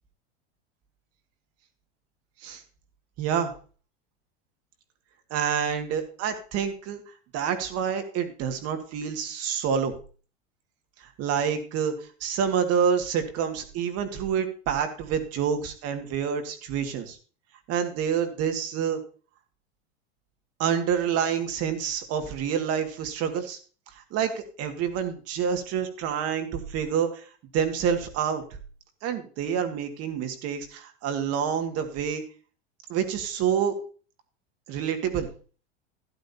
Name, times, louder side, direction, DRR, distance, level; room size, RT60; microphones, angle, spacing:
voice 1, 3.2-3.5 5.3-7.0 7.3-9.9 11.2-17.2 17.7-19.0 20.6-23.6 24.0-27.2 27.5-28.4 29.0-32.2 32.9-33.7 34.7-35.3, right 7 dB, 45° right, 6 dB, 2.1 m, -27 dB
12.5 x 11.5 x 2.8 m, 0.38 s
hypercardioid pair, 110°, 34 cm